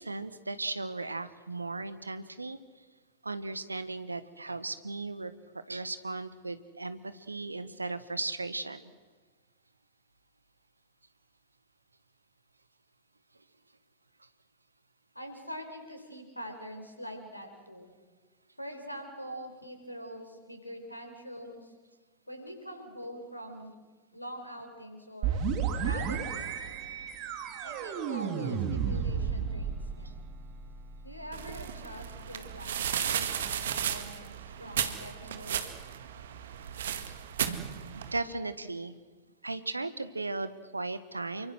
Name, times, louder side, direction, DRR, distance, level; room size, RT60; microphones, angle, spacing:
voice 1, 0.0-2.6 3.2-8.9 37.1-37.2 38.1-39.0 39.4-41.5, right 3 dB, 80° right, 13 dB, 1.4 m, -36 dB
voice 2, 15.1-17.9 18.6-21.7 22.3-23.7 24.1-25.4 25.8-26.8 27.6-30.2 31.0-35.7, equal, 90° left, 6 dB, 4.6 m, -44 dB
sound 1, 25.2-34.8, right 6 dB, 40° right, 3.0 m, -35 dB
sound 2, 31.3-38.2, right 9 dB, 60° right, 1.9 m, -35 dB
28.5 x 25.0 x 6.3 m, 1.4 s
figure-of-eight pair, 90°, 0 cm